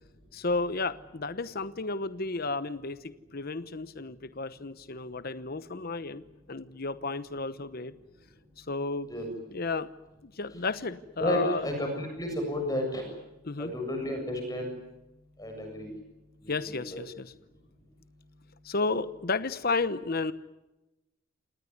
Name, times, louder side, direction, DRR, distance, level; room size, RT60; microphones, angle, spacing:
voice 1, 0.3-6.2 6.5-7.9 8.6-9.1 9.5-9.9 10.2-11.7 13.4-13.7 16.5-17.3 18.6-20.3, left 3 dB, 45° left, 13 dB, 1.0 m, -32 dB
voice 2, 11.2-13.1 13.6-14.7 15.4-15.9 16.4-17.0, left 1 dB, 15° left, 3 dB, 7.4 m, -32 dB
28.0 x 19.5 x 9.5 m, 0.98 s
head